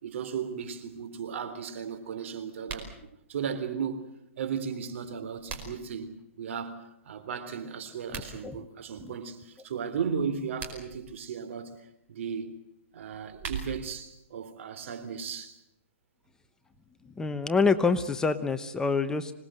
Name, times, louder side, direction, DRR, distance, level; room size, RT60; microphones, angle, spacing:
voice 1, 0.0-4.1 4.4-12.5 12.9-15.6, right 7 dB, 65° right, 3.6 m, -36 dB
sound 1, 2.6-2.9 5.0-5.9 8.0-8.3 10.4-11.0 13.0-14.0, right 5 dB, 25° right, 5.0 m, -40 dB
voice 2, 8.1-8.7 9.0-9.1 17.0-19.3, left 4 dB, 10° left, 1.0 m, -27 dB
26.0 x 19.5 x 7.8 m
hypercardioid pair, 145°, 7 cm